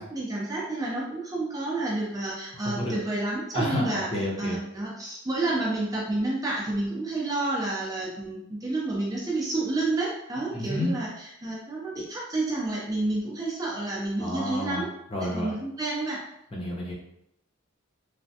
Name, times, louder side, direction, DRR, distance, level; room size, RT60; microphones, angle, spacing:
voice 1, 0.0-4.1 4.4-14.9 15.2-16.2, right 2 dB, 15° right, -4 dB, 0.4 m, -30 dB
voice 2, 2.5-3.0 3.5-4.6 10.5-10.9 14.2-14.8 15.1-15.5 16.5-16.9, left 1 dB, 25° left, -3 dB, 0.6 m, -30 dB
3.2 x 2.1 x 2.7 m, 0.77 s
head